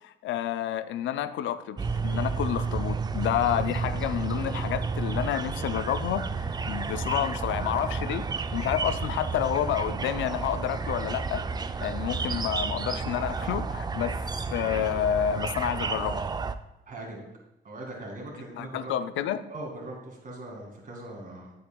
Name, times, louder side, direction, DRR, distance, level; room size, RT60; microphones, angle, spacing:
voice 1, 0.0-11.4 11.8-14.1 14.5-16.2 18.6-19.4, left 10 dB, 75° left, 12 dB, 0.5 m, -29 dB
sound 1, 1.8-16.5, right 4 dB, 20° right, 0.4 m, -31 dB
voice 2, 16.9-17.2 17.6-19.2 19.5-21.5, right 2 dB, 40° right, -1 dB, 2.2 m, -40 dB
8.7 x 7.8 x 2.3 m, 0.89 s
cardioid pair, 90°, 20 cm